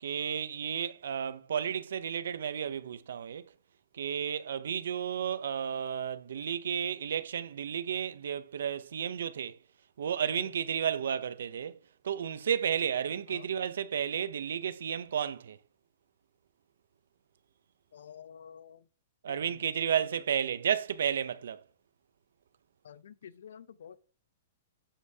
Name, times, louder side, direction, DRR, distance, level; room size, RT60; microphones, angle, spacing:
voice 1, 0.0-3.4 3.9-9.6 10.0-11.8 12.0-15.6 19.2-21.6, right 8 dB, 85° right, 0.5 m, -32 dB
voice 2, 17.9-18.8 19.3-19.6 22.8-24.0, left 8 dB, 85° left, 0.6 m, -50 dB
9.6 x 5.4 x 2.8 m
hypercardioid pair, 165°, 0 cm